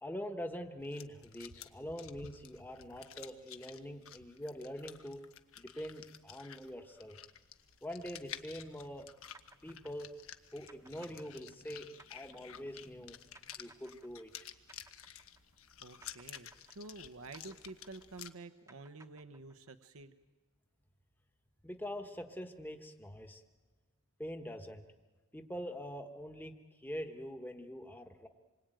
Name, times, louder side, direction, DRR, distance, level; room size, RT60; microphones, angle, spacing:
voice 1, 0.0-5.2 5.6-7.2 7.8-9.1 9.6-10.1 10.5-13.2 13.6-14.3 21.6-23.4 24.2-24.8 25.3-28.3, equal, 10° left, 5 dB, 1.2 m, -44 dB
sound 1, 0.8-18.3, left 10 dB, 75° left, 1.3 m, -52 dB
sound 2, 9.3-15.7 16.0-19.9, right 2 dB, 15° right, 1.0 m, -62 dB
voice 2, 15.8-20.1, right 3 dB, 75° right, 8 dB, 1.1 m, -50 dB
27.0 x 23.0 x 9.1 m, 1.3 s
head